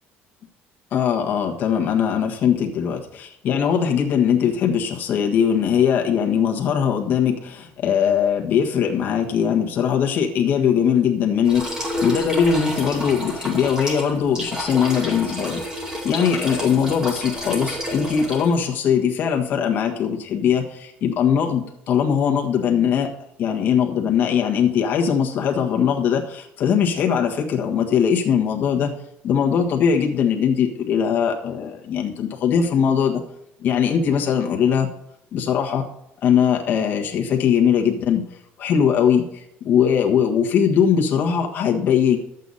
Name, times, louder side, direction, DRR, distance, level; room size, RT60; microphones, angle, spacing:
voice 1, 0.9-15.6 16.0-23.1 23.4-28.9 29.2-33.2 33.6-34.9 35.3-35.8 36.2-38.2 38.6-39.3 39.6-42.2, left 7 dB, 45° left, 1 dB, 1.5 m, -20 dB
sound 1, 11.4-18.6, equal, 15° right, 2.4 m, -30 dB
11.0 x 8.2 x 4.1 m, 0.79 s
cardioid pair, 170°, 5 cm